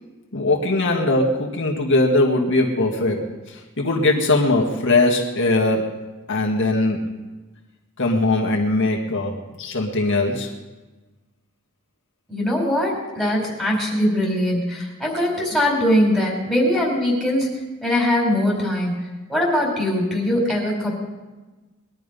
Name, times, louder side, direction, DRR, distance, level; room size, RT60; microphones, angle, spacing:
voice 1, 0.3-6.0 6.3-7.0 8.0-10.5, left 2 dB, 60° left, -1 dB, 1.9 m, -20 dB
voice 2, 12.3-19.0 19.3-20.9, left 1 dB, ahead, -3 dB, 4.8 m, -21 dB
21.5 x 11.5 x 5.3 m, 1.2 s
head